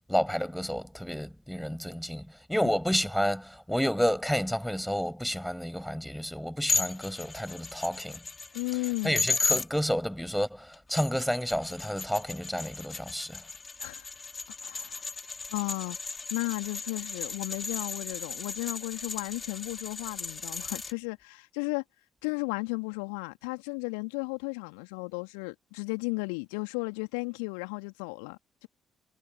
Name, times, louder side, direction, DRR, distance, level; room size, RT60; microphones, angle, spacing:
voice 1, 0.1-8.2 9.0-13.4, equal, ahead, 7.2 m, -30 dB
sound 1, 6.7-9.7 10.7-20.9, left 4 dB, 30° left, 3.3 m, -35 dB
voice 2, 8.5-9.2 13.8-14.1 14.6-15.1 15.5-21.8 22.2-28.7, left 37 dB, 70° left, 2.7 m, -34 dB
figure-of-eight pair, 40°, 0 cm